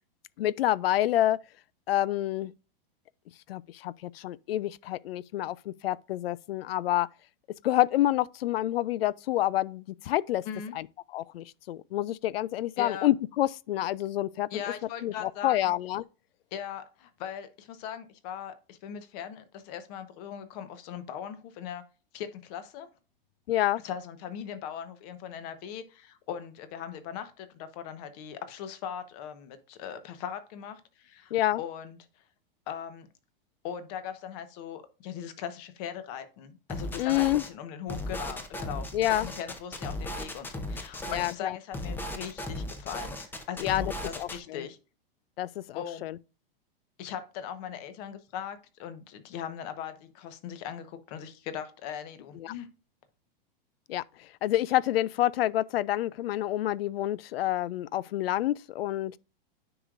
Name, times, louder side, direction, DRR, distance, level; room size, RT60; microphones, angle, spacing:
voice 1, 0.4-1.4 1.9-2.5 3.5-7.1 7.6-10.4 10.7-10.9 11.1-14.5 15.0-16.0 23.5-23.8 31.3-31.6 37.0-37.4 38.9-39.3 41.1-41.6 43.6-43.8 44.2-44.6 45.4-46.2 52.4-52.5 53.9-59.2, left 14 dB, 90° left, 0.5 m, -28 dB
voice 2, 12.8-13.1 14.5-15.7 16.5-21.8 22.1-22.9 23.8-32.0 32.7-33.1 33.6-38.9 39.2-43.1 43.5-44.8 45.7-46.0 47.0-52.7, left 9 dB, 45° left, 1.1 m, -39 dB
sound 1, 36.7-37.5 37.9-41.3 41.7-44.4, left 1 dB, 5° left, 0.6 m, -36 dB
9.7 x 4.9 x 2.5 m
supercardioid pair, 150°, 29 cm